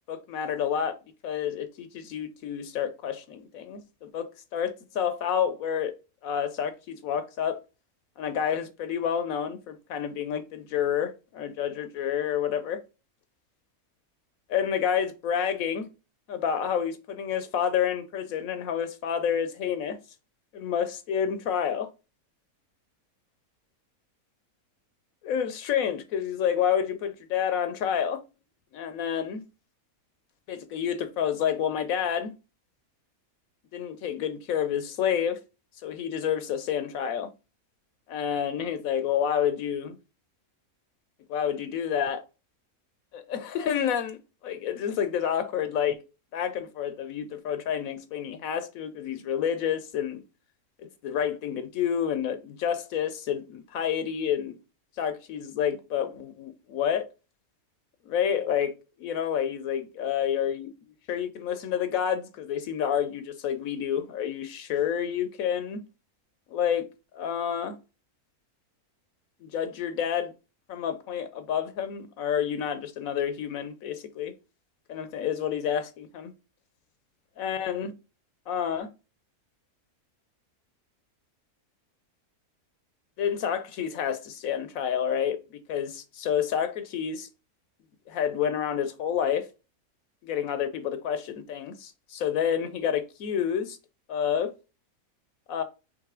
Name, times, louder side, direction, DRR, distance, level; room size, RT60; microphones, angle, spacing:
voice 1, 0.1-1.0 1.2-5.9 6.2-7.6 8.2-12.8 14.5-15.9 16.3-20.0 20.5-21.9 25.2-28.2 28.7-29.4 30.5-32.3 33.7-35.4 35.8-37.3 38.1-39.9 41.3-42.2 43.1-44.2 44.4-46.0 46.3-50.2 50.8-54.6 55.0-57.0 58.1-58.7 59.0-60.7 61.1-65.8 66.5-66.9 67.1-67.8 69.4-70.3 70.7-74.3 74.9-76.3 77.4-77.9 78.5-78.9 83.2-85.4 85.7-87.3 88.1-89.5 90.2-93.8 94.1-94.5 95.5-95.6, left 8 dB, 75° left, 1.0 m, -29 dB
4.7 x 3.1 x 3.6 m
omnidirectional pair, 1.6 m